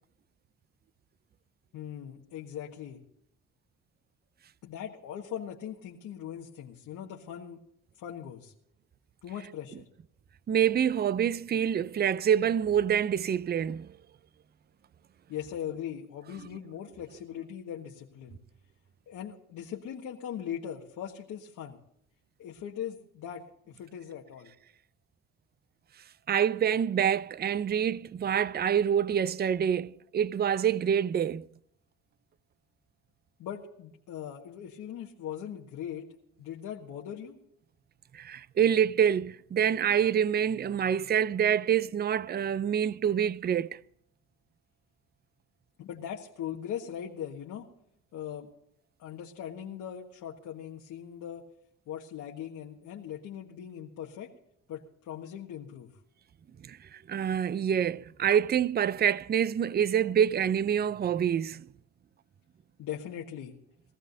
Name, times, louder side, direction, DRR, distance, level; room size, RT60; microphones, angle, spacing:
voice 1, 1.7-3.0 4.6-7.6 8.0-8.5 9.2-9.9 15.3-18.4 19.1-21.8 22.4-24.5 33.4-36.1 36.4-37.4 45.8-47.7 48.1-48.5 49.0-51.4 51.9-54.3 54.7-55.9 62.8-63.5, left 9 dB, 80° left, 1.6 m, -40 dB
voice 2, 10.5-13.9 26.3-31.5 38.1-43.8 56.6-61.7, right 8 dB, 35° right, 0.5 m, -26 dB
21.5 x 15.0 x 2.7 m
cardioid pair, 90°, 30 cm